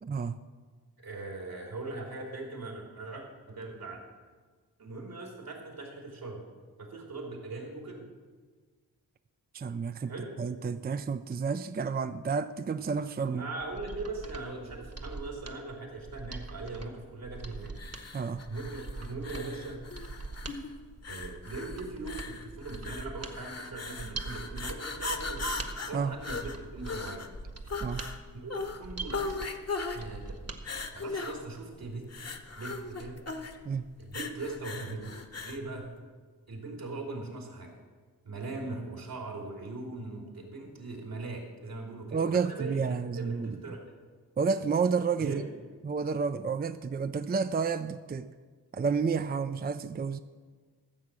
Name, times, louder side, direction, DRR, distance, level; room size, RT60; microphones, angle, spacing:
voice 1, 0.0-0.4 9.5-10.1 10.4-13.4 18.1-18.4 25.9-26.2 27.8-28.1 33.7-33.9 42.1-43.6 44.4-45.5 45.8-48.3 48.7-50.2, right 5 dB, 25° right, 11 dB, 0.4 m, -30 dB
voice 2, 1.0-4.0 4.8-6.4 6.8-8.1 10.1-10.3 13.3-17.8 18.5-19.8 21.1-25.4 25.9-27.3 28.3-29.3 29.8-30.2 30.9-32.1 32.5-33.2 34.0-35.9 36.5-37.8 38.2-42.8 43.1-43.8 45.2-45.4, right 3 dB, 75° right, 0 dB, 3.0 m, -40 dB
Mechanisms, 13.5-30.6 31.0-31.1, right 3 dB, 40° right, 1.2 m, -43 dB
sound 1, 17.7-35.7, left 3 dB, 45° left, 1.1 m, -39 dB
14.5 x 7.2 x 6.2 m, 1.5 s
cardioid pair, 60°, 36 cm